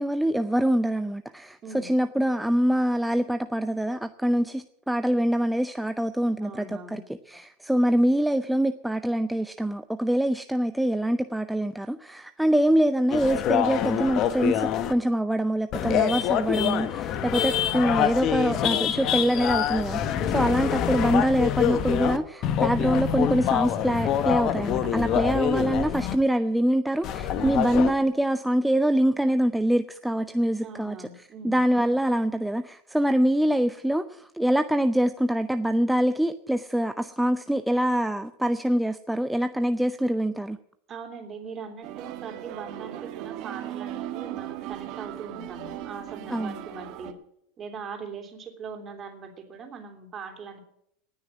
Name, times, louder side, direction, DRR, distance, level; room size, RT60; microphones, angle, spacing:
voice 1, 0.0-40.6 46.3-46.6, right 1 dB, 5° right, 9 dB, 0.6 m, -25 dB
voice 2, 6.4-7.0 15.8-16.1 20.2-20.5 25.1-25.4 27.4-27.7 30.6-31.6 40.9-47.2 47.6-50.6, right 5 dB, 30° right, 4 dB, 3.3 m, -41 dB
sound 1, 13.1-14.9 15.7-22.2 22.4-26.2 27.0-27.9, left 10 dB, 45° left, 1.2 m, -26 dB
sound 2, 41.8-47.1, right 12 dB, 50° right, 1.7 m, -37 dB
19.0 x 6.5 x 9.8 m, 0.75 s
supercardioid pair, 120°, 0 cm